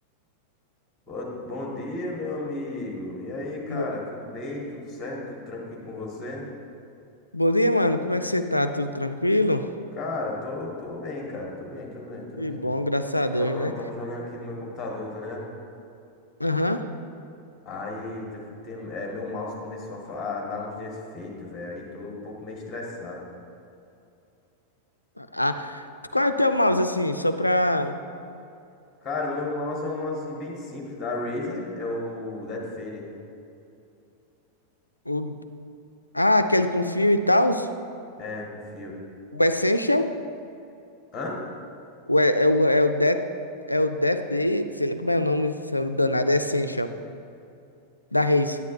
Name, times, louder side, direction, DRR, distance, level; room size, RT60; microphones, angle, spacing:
voice 1, 1.1-6.5 9.9-12.7 13.4-15.5 17.6-23.2 29.0-33.1 38.2-39.0 41.1-41.4, left 2 dB, 20° left, -2 dB, 1.5 m, -34 dB
voice 2, 7.3-9.7 12.4-13.7 16.4-16.8 25.2-25.9 26.1-28.0 35.1-35.4 36.1-37.7 39.3-40.1 42.1-43.2 43.7-46.9 48.1-48.6, left 1 dB, 85° left, 9 dB, 0.3 m, -23 dB
9.4 x 9.2 x 2.6 m, 2.7 s
figure-of-eight pair, 90°, 0 cm